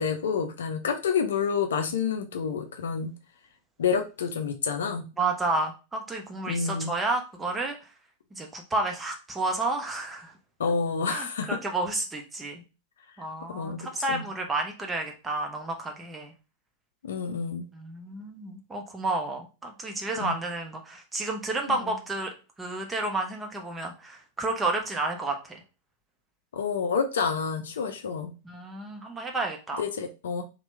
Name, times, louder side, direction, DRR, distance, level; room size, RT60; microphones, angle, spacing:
voice 1, 0.0-3.1 3.8-5.1 6.5-6.9 10.6-11.6 13.5-13.8 14.1-14.2 17.0-17.7 20.2-20.4 26.5-28.3 29.8-30.4, left 6 dB, 65° left, 6 dB, 0.5 m, -28 dB
voice 2, 5.2-7.8 8.3-10.3 11.1-12.6 13.2-16.3 17.7-25.6 28.4-29.8, right 2 dB, 15° right, 2 dB, 0.7 m, -31 dB
2.9 x 2.2 x 3.1 m, 0.31 s
figure-of-eight pair, 90°, 0 cm